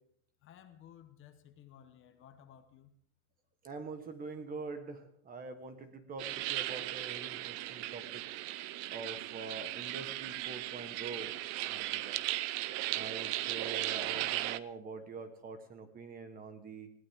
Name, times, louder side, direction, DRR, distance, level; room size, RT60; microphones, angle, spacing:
voice 1, 0.4-2.9, left 9 dB, 30° left, 8 dB, 1.1 m, -56 dB
voice 2, 3.6-8.2 8.9-11.3 11.6-12.2 12.9-16.9, right 4 dB, 20° right, 9 dB, 1.4 m, -45 dB
sound 1, 6.2-14.6, right 15 dB, 40° right, 0.5 m, -37 dB
20.5 x 16.5 x 3.6 m, 0.71 s
supercardioid pair, 160°, 40 cm